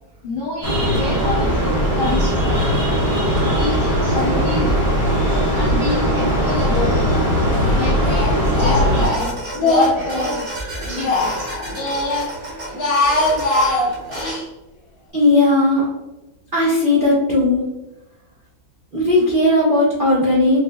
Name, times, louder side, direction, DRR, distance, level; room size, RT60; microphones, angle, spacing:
voice 1, 0.2-2.7 3.5-4.8 5.5-7.1 7.7-10.5 10.9-11.5, left 3 dB, 60° left, -7 dB, 0.4 m, -26 dB
sound 1, 0.6-9.1, equal, 30° right, 0.9 m, -19 dB
Speech, 6.6-7.3 7.6-10.4 10.8-12.3 12.6-14.4, left 2 dB, 80° left, 1.8 m, -22 dB
sound 2, 8.9-14.3, right 1 dB, 60° right, 1.8 m, -31 dB
voice 2, 15.1-15.9 16.5-17.7 18.9-20.6, left 2 dB, 85° right, -6 dB, 0.4 m, -16 dB
6.1 x 2.1 x 2.3 m, 1.0 s
omnidirectional pair, 2.2 m